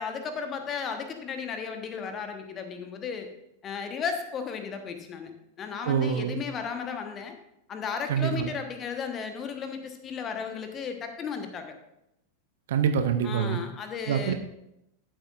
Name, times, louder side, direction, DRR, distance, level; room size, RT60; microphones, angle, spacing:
voice 1, 0.0-3.3 3.6-7.3 7.7-11.7 13.2-14.3, left 6 dB, 25° left, 6 dB, 1.2 m, -34 dB
voice 2, 5.8-6.4 8.1-8.5 12.7-13.6 14.0-14.3, right 8 dB, 55° right, 9 dB, 0.7 m, -25 dB
13.0 x 7.5 x 2.5 m, 0.83 s
figure-of-eight pair, 90°, 0 cm